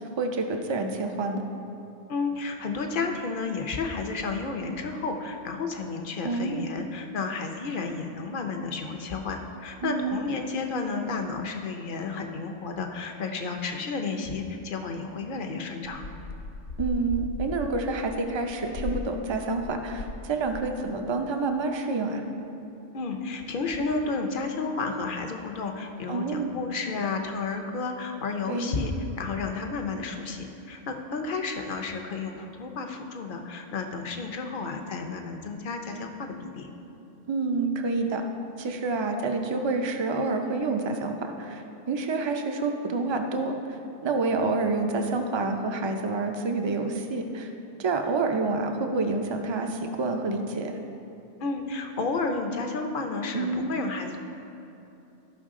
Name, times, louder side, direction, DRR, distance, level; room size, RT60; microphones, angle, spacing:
voice 1, 0.2-1.4 6.2-6.7 9.8-10.2 16.8-22.3 26.1-26.5 28.5-28.8 37.3-38.2 38.6-43.5 44.0-47.5 47.8-50.7 53.3-53.8, right 3 dB, 35° right, 4 dB, 0.4 m, -28 dB
voice 2, 2.1-16.0 22.9-36.7 51.4-54.2, left 4 dB, 50° left, 4 dB, 0.8 m, -32 dB
sound 1, 15.9-20.2 20.5-20.9, left 3 dB, 80° left, 1.1 m, -37 dB
13.0 x 5.5 x 3.7 m, 2.9 s
omnidirectional pair, 1.2 m